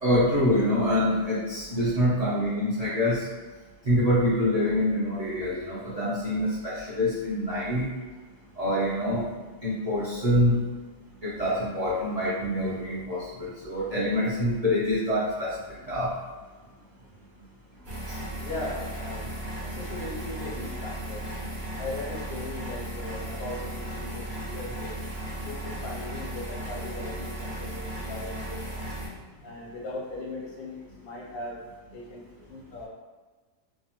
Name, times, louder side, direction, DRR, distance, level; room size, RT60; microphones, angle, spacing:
voice 1, 0.0-3.2 3.9-7.9 8.6-9.3 9.6-10.6 11.2-15.6 15.9-16.1, left 1 dB, 65° right, -8 dB, 0.3 m, -25 dB
sound 1, 17.8-29.1, right 1 dB, 40° right, 0.9 m, -36 dB
voice 2, 18.4-19.3 19.6-21.2 21.8-24.9 25.4-31.6 31.9-32.9, left 2 dB, 85° left, -4 dB, 1.3 m, -39 dB
2.8 x 2.3 x 2.9 m, 1.3 s
omnidirectional pair, 1.5 m